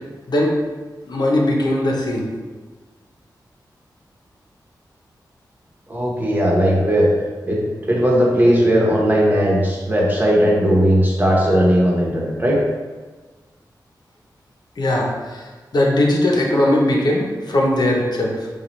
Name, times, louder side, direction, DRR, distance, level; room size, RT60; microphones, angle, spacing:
voice 1, 0.3-0.6 1.1-2.3 14.8-15.4 15.7-18.5, left 1 dB, 65° left, -1 dB, 0.9 m, -19 dB
voice 2, 5.9-7.1 7.4-12.6, equal, 25° right, -3 dB, 1.2 m, -17 dB
5.6 x 2.4 x 3.2 m, 1.3 s
cardioid pair, 60°, 8 cm